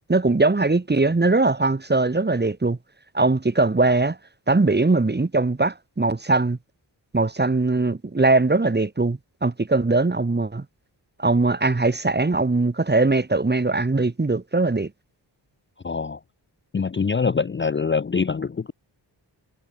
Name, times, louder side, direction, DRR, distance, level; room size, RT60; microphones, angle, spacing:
voice 1, 0.1-2.8 3.1-4.2 4.5-6.6 7.1-10.6 11.2-14.9, right 3 dB, 25° right, 1.4 m, -21 dB
voice 2, 15.8-16.2 16.7-18.7, left 5 dB, 25° left, 0.5 m, -24 dB
wide cardioid pair, 75°, 44 cm